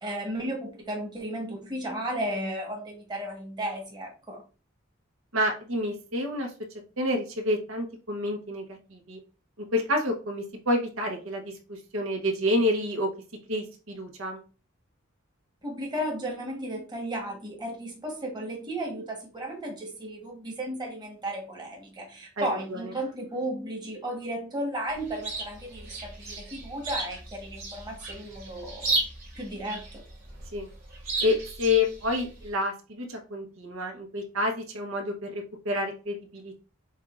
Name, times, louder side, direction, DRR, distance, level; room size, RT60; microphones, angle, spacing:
voice 1, 0.0-4.4 15.6-29.0 29.4-30.0, right 1 dB, 20° right, -1 dB, 1.3 m, -34 dB
voice 2, 5.3-6.5 7.0-9.2 9.7-13.1 13.5-14.4 22.4-22.9 30.5-30.7 31.2-36.6, left 1 dB, 90° right, 2 dB, 1.1 m, -29 dB
Chirp tweet, 24.9-32.5, right 2 dB, 55° right, 2.5 m, -35 dB
7.1 x 2.5 x 2.5 m, 0.34 s
head